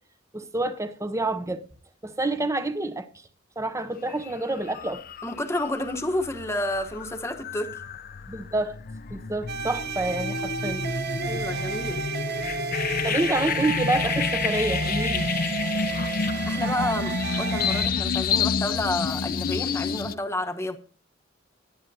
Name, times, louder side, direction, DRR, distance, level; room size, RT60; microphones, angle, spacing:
voice 1, 0.3-1.6 2.0-3.1 3.6-5.0 8.3-8.8 9.1-10.9 13.0-15.3, right 2 dB, 15° right, 0.7 m, -28 dB
sound 1, 4.1-4.3 4.7-20.1, left 5 dB, 45° left, 0.5 m, -29 dB
voice 2, 5.2-7.7 11.2-12.0 16.5-20.8, left 1 dB, 15° left, 1.1 m, -30 dB
sound 2, 9.5-17.9, right 6 dB, 55° right, 1.1 m, -32 dB
18.5 x 10.5 x 2.8 m
head